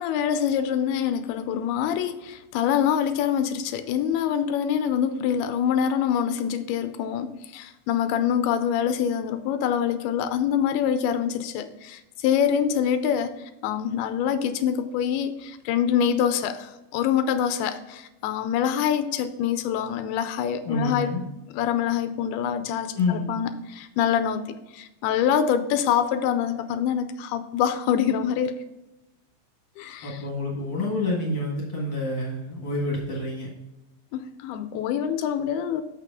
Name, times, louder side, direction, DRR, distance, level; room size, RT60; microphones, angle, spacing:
voice 1, 0.0-13.3 13.6-21.1 21.5-24.5 24.7-28.5 29.8-30.2 34.1-35.8, left 8 dB, 85° left, 10 dB, 2.5 m, -25 dB
voice 2, 20.6-21.2 22.9-23.3 30.0-33.5, left 2 dB, 45° left, -2 dB, 1.5 m, -28 dB
6.9 x 6.6 x 3.6 m, 0.99 s
omnidirectional pair, 4.5 m